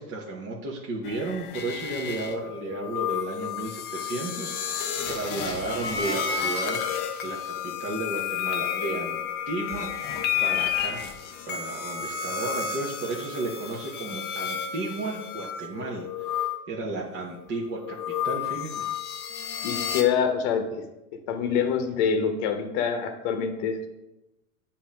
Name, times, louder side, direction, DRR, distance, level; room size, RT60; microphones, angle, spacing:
voice 1, 0.0-6.8 7.2-9.2 9.5-11.1 11.5-18.9, right 2 dB, 25° right, -3 dB, 1.0 m, -33 dB
sound 1, 1.0-16.6 17.4-20.0, left 8 dB, 25° left, 0.5 m, -31 dB
voice 2, 19.6-20.8 21.3-23.9, left 7 dB, 45° left, 7 dB, 1.0 m, -25 dB
8.4 x 2.9 x 5.0 m, 0.96 s
hypercardioid pair, 125°, 45 cm